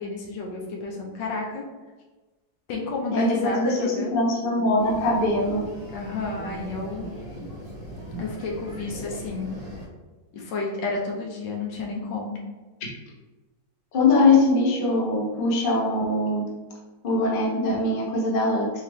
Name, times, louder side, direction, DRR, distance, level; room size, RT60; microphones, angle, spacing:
voice 1, 0.0-1.6 2.7-4.1 5.9-7.1 8.2-9.5 10.3-12.4, left 3 dB, 80° left, -1 dB, 1.5 m, -31 dB
voice 2, 3.1-5.6 13.9-16.5 17.0-18.7, left 2 dB, 45° left, -3 dB, 0.7 m, -22 dB
sound 1, 4.8-9.9, equal, 25° right, 1.1 m, -39 dB
4.1 x 3.0 x 3.1 m, 1.2 s
omnidirectional pair, 2.0 m